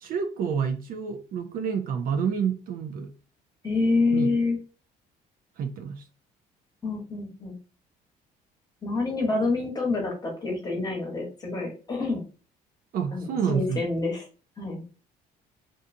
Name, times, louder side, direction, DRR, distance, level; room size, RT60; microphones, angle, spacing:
voice 1, 0.0-3.1 4.1-4.3 5.6-6.0 12.9-13.9, right 7 dB, 60° right, 6 dB, 0.4 m, -28 dB
voice 2, 3.6-4.6 6.8-7.5 8.8-12.2 13.1-14.3 14.6-14.8, left 3 dB, 25° left, -1 dB, 1.1 m, -27 dB
2.6 x 2.3 x 2.6 m, 0.35 s
cardioid pair, 110°, 17 cm